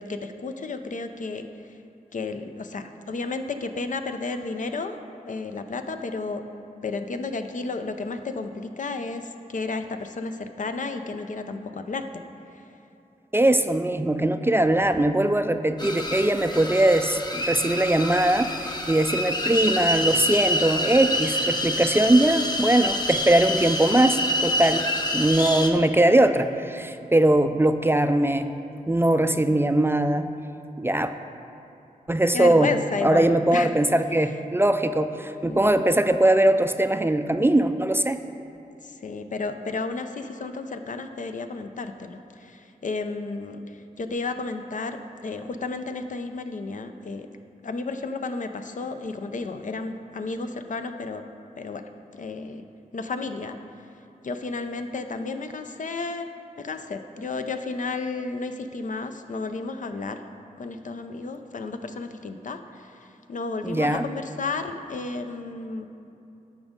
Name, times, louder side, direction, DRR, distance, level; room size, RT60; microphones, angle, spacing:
voice 1, 0.0-1.5 2.1-5.0 5.2-6.4 6.8-12.2 29.5-29.7 32.3-33.7 35.5-35.8 38.9-43.6 44.0-45.0 45.2-47.3 47.6-51.2 51.6-51.8 52.1-52.7 52.9-53.6 54.2-56.3 56.6-60.2 60.6-62.9 63.3-65.9, left 3 dB, 60° left, 7 dB, 0.5 m, -32 dB
voice 2, 13.3-24.8 25.1-28.5 28.9-30.3 30.8-31.1 32.1-32.7 33.0-38.2 63.6-64.0, right 1 dB, 15° right, 9 dB, 0.4 m, -21 dB
sound 1, 15.8-25.7, left 1 dB, 30° left, 0.8 m, -27 dB
13.0 x 5.2 x 3.7 m, 2.8 s
cardioid pair, 60°, 15 cm